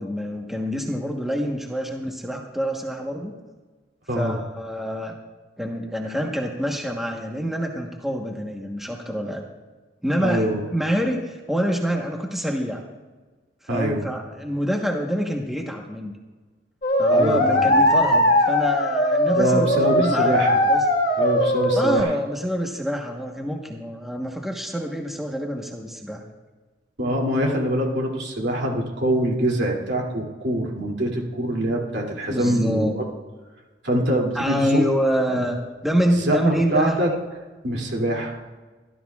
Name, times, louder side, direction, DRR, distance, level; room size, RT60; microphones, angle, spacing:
voice 1, 0.0-3.3 4.1-5.2 5.6-9.5 10.0-12.9 13.7-16.1 17.0-20.8 21.7-26.2 32.3-32.9 34.3-37.0, equal, ahead, 0 dB, 1.1 m, -26 dB
voice 2, 4.1-4.4 10.2-10.6 13.7-14.0 17.1-17.7 19.3-20.6 21.2-22.1 27.0-33.0 33.8-34.8 35.3-35.4 36.2-37.1 37.6-38.4, right 1 dB, 70° right, -1 dB, 2.6 m, -24 dB
sound 1, 16.8-22.0, left 1 dB, 50° left, 1.6 m, -19 dB
25.0 x 12.5 x 2.4 m, 1.3 s
head